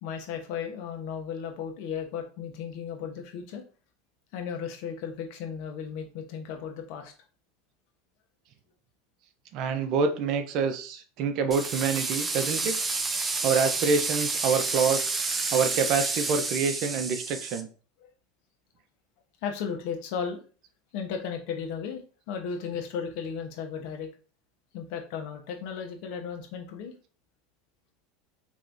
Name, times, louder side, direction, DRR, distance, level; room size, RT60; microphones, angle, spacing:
voice 1, 0.0-3.6 4.3-7.1 13.2-13.3 18.0-18.1 19.4-20.4 20.9-22.0 22.3-24.1 24.7-26.9, left 7 dB, 65° left, 4 dB, 1.0 m, -35 dB
voice 2, 9.5-12.8 13.4-15.1 15.5-17.7, right 5 dB, 55° right, 8 dB, 0.7 m, -26 dB
sound 1, 11.5-17.6, right 3 dB, 20° right, 0.6 m, -30 dB
4.4 x 3.2 x 2.6 m, 0.37 s
supercardioid pair, 110°, 0 cm